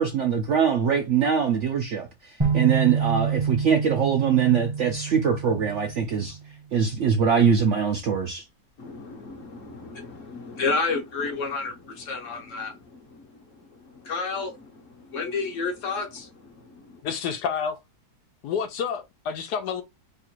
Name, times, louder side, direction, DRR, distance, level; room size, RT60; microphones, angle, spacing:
voice 1, 0.0-8.5, right 7 dB, 70° right, 0.7 m, -23 dB
sound 1, 2.4-6.4, right 6 dB, 20° right, 0.7 m, -28 dB
voice 2, 8.8-17.0, left 4 dB, 55° left, 1.2 m, -32 dB
voice 3, 17.0-17.8 18.4-19.8, left 7 dB, 80° left, 1.2 m, -29 dB
3.2 x 2.4 x 4.4 m
omnidirectional pair, 1.8 m